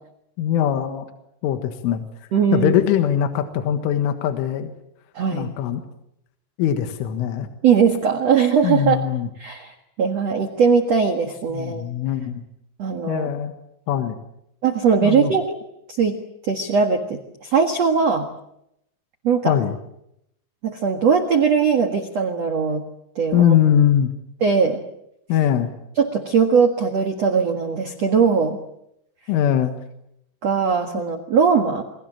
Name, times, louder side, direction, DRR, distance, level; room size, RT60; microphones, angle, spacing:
voice 1, 0.4-1.1 1.4-2.1 2.5-4.7 5.3-5.8 6.6-7.5 8.6-9.3 11.5-12.4 13.1-13.5 13.9-14.2 15.0-15.3 19.5-19.8 23.3-24.1 25.3-25.7 29.3-29.7, left 10 dB, 75° left, 8 dB, 4.0 m, -21 dB
voice 2, 2.3-2.7 5.1-5.5 7.6-9.0 9.4-11.8 12.8-13.3 14.6-15.6 15.9-16.1 16.4-18.3 19.2-19.5 20.6-22.8 23.1-23.5 24.4-24.8 26.0-28.6 30.4-31.8, right 6 dB, 80° right, 5 dB, 1.4 m, -20 dB
29.0 x 23.5 x 7.5 m, 0.78 s
omnidirectional pair, 5.9 m